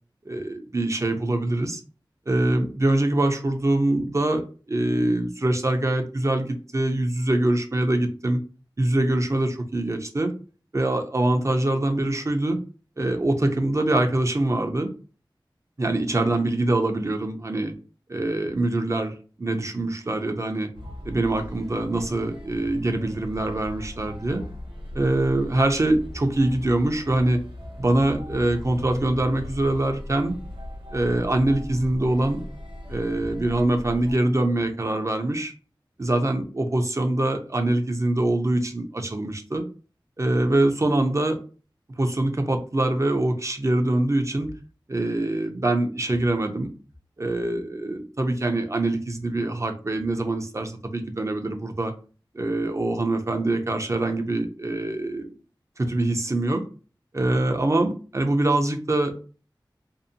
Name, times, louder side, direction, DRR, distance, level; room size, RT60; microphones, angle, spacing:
voice 1, 0.3-1.8 2.3-4.4 4.7-8.4 8.8-10.3 10.7-12.6 13.0-14.9 15.8-17.7 18.1-20.7 21.0-24.4 24.9-27.4 27.8-30.4 30.9-32.4 32.9-35.5 36.0-39.6 40.2-41.4 42.0-44.5 44.9-46.7 47.2-51.9 52.3-55.3 55.8-56.6 57.1-59.1, right 2 dB, 35° right, 5 dB, 0.5 m, -24 dB
sound 1, 20.7-34.1, left 1 dB, 80° right, 0.8 m, -38 dB
2.6 x 2.1 x 2.6 m, 0.37 s
wide cardioid pair, 55°, 8 cm